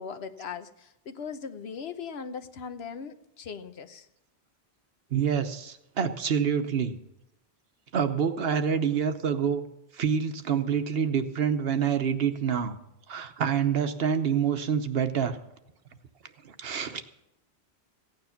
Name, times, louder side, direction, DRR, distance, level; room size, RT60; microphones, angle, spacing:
voice 1, 0.0-4.1, left 6 dB, 70° left, 10 dB, 1.1 m, -39 dB
voice 2, 5.1-7.0 7.9-9.6 9.9-12.8 13.1-15.4 16.4-17.0, right 7 dB, 65° right, 9 dB, 1.1 m, -27 dB
15.5 x 9.5 x 5.8 m, 0.86 s
omnidirectional pair, 1.1 m